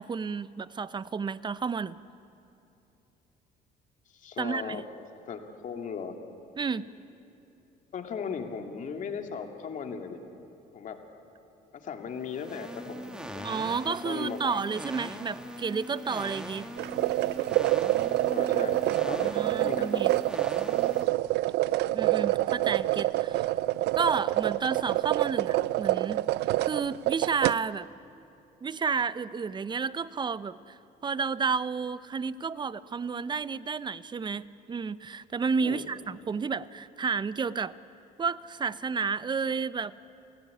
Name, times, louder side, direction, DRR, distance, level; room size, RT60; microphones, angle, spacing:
voice 1, 0.0-2.0 4.4-4.8 6.6-6.9 13.4-16.7 19.3-20.1 21.9-23.5 24.0-26.2 26.6-27.9 28.6-37.7 38.2-39.9, right 5 dB, 25° right, 16 dB, 0.7 m, -31 dB
voice 2, 4.1-4.8 5.3-6.1 7.9-10.2 10.7-11.0 11.7-13.5 13.8-14.6 18.3-20.1 35.6-35.8, left 6 dB, 50° left, 4 dB, 2.5 m, -37 dB
sound 1, 12.1-21.0, equal, 5° right, 2.0 m, -41 dB
sound 2, 16.8-27.5, right 17 dB, 80° right, 0.5 m, -27 dB
29.5 x 16.0 x 9.8 m, 2.8 s
cardioid pair, 110°, 17 cm